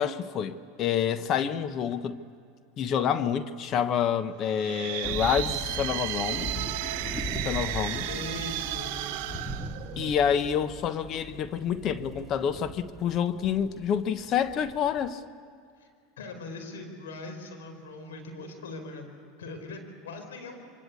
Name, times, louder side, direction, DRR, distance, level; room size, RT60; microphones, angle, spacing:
voice 1, 0.0-2.2 2.8-6.5 7.4-8.1 10.0-15.2, left 8 dB, 45° left, 1.1 m, -28 dB
sound 1, 4.5-10.4, right 14 dB, 65° right, 1.0 m, -34 dB
sound 2, 5.0-15.1, equal, 5° left, 2.6 m, -39 dB
voice 2, 7.9-9.4 15.8-15.9 16.2-19.1 19.4-20.6, left 2 dB, 85° left, 4.7 m, -41 dB
26.0 x 24.5 x 8.4 m
hypercardioid pair, 100°, 0 cm